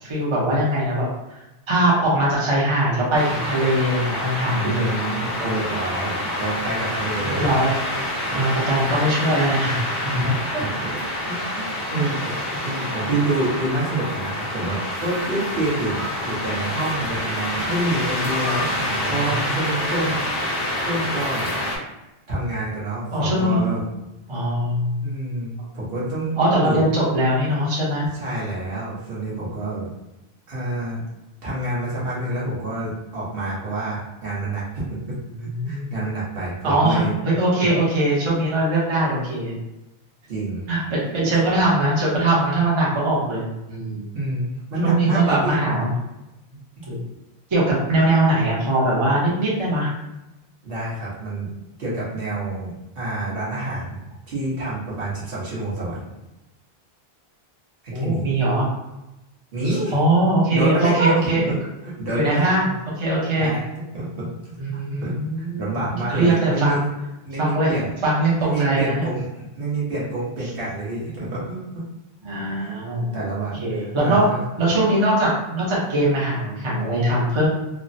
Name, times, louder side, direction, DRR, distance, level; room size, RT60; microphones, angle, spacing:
voice 1, 0.0-1.4 1.7-5.0 5.4-5.7 7.2-7.8 8.1-10.2 11.9-12.3 12.9-13.0 18.7-19.7 23.1-23.6 24.3-25.1 26.4-28.0 35.4-35.9 36.6-39.5 40.7-44.0 44.8-45.9 46.9-47.0 47.5-49.9 57.9-58.7 59.9-61.5 62.1-62.7 63.0-63.5 64.6-65.8 66.1-66.8 67.4-67.7 68.0-69.1 72.2-73.1 73.6-77.5, right 1 dB, 30° right, -6 dB, 0.7 m, -21 dB
sound 1, 3.1-21.8, left 1 dB, 30° left, 0.6 m, -27 dB
voice 2, 4.6-7.6 8.3-8.4 10.1-12.3 12.6-21.5 22.3-23.8 25.0-26.8 28.1-29.9 30.5-31.0 31.4-37.1 37.6-37.7 40.3-40.6 44.1-45.6 50.6-51.5 51.8-56.0 57.8-58.3 59.5-59.9 60.5-61.6 61.8-62.6 63.4-63.6 63.9-64.3 64.7-66.8 67.2-67.9 68.4-71.8 72.6-72.8 73.1-74.4, right 2 dB, 60° right, -7 dB, 1.1 m, -28 dB
3.2 x 2.0 x 2.6 m, 0.97 s
omnidirectional pair, 1.1 m